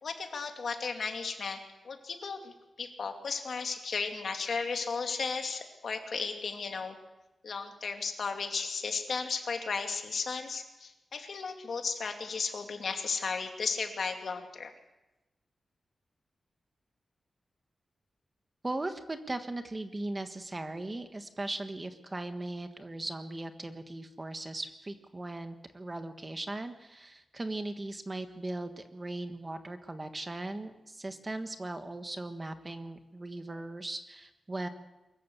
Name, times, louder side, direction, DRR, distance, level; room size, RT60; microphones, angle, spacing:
voice 1, 0.0-1.6 1.8-7.0 7.4-14.7, left 5 dB, 65° left, 4 dB, 2.6 m, -35 dB
voice 2, 18.6-34.7, right 2 dB, 20° right, 8 dB, 1.4 m, -38 dB
23.5 x 14.5 x 8.3 m, 1.0 s
wide cardioid pair, 130°, 0 cm